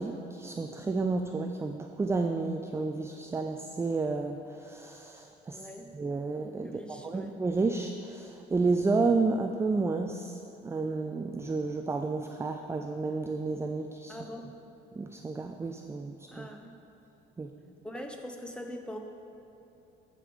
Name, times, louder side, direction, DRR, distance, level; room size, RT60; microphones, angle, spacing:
voice 1, 0.0-5.7 5.9-14.2 14.9-16.5 17.4-17.5, right 3 dB, 15° right, 5 dB, 0.4 m, -31 dB
voice 2, 5.5-5.9 6.6-7.3 14.1-14.6 16.3-16.8 17.8-19.0, equal, 5° left, 3 dB, 1.0 m, -42 dB
13.0 x 5.3 x 5.0 m, 3.0 s
cardioid pair, 110°, 17 cm